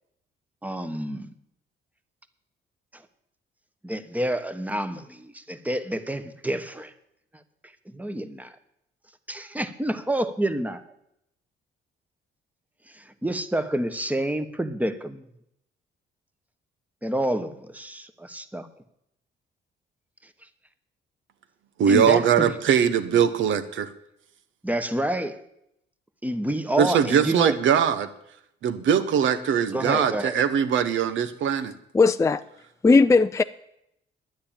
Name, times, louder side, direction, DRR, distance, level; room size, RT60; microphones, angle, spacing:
voice 1, 0.6-1.3 2.9-3.0 3.8-6.9 7.9-8.5 9.3-10.8 12.9-15.2 17.0-18.7 21.9-22.6 24.6-25.4 26.2-27.6 29.7-30.4, right 1 dB, 5° right, 1.2 m, -28 dB
voice 2, 21.8-23.9 26.8-28.1 28.6-31.7, right 8 dB, 75° right, 1.2 m, -21 dB
voice 3, 31.9-32.4 32.8-33.4, left 4 dB, 15° left, 0.4 m, -17 dB
10.5 x 9.7 x 8.9 m
cardioid pair, 90°, 20 cm